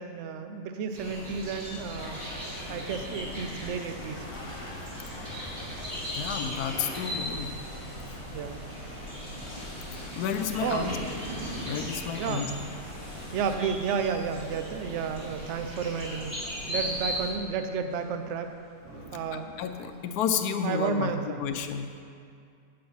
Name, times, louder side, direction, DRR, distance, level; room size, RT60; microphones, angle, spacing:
voice 1, 0.0-2.2 2.7-4.3 8.3-8.6 10.6-10.9 12.2-12.5 13.3-16.4 16.7-18.5 19.1-19.5 20.6-21.4, right 6 dB, 65° right, 7 dB, 0.7 m, -32 dB
sound 1, 0.9-17.3, equal, 40° right, 2.9 m, -38 dB
sound 2, 1.6-20.1, right 1 dB, 90° right, 2.9 m, -49 dB
sound 3, 2.0-13.6, left 2 dB, 25° left, 0.9 m, -43 dB
voice 2, 6.1-7.5 9.9-10.9 11.6-12.5 13.0-13.4 16.6-16.7 19.3-21.1 21.4-22.0, left 7 dB, 75° left, 7 dB, 1.1 m, -32 dB
7.8 x 7.7 x 5.5 m, 2.3 s
omnidirectional pair, 1.8 m